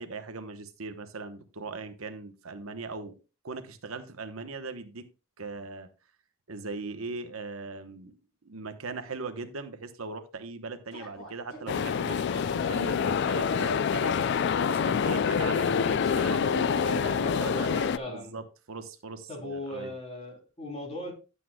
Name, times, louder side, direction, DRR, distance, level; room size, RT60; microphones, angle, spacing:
voice 1, 0.0-3.2 3.4-5.1 5.4-5.9 6.5-8.2 8.4-14.1 14.5-19.9, right 3 dB, 85° right, 9 dB, 1.0 m, -39 dB
sound 1, 10.9-17.7, equal, 75° left, 4.2 m, -46 dB
sound 2, 11.7-18.0, left 6 dB, 55° left, 0.3 m, -26 dB
voice 2, 16.8-18.3 19.3-21.1, left 1 dB, 30° left, -1 dB, 3.3 m, -38 dB
11.0 x 8.3 x 2.2 m, 0.32 s
head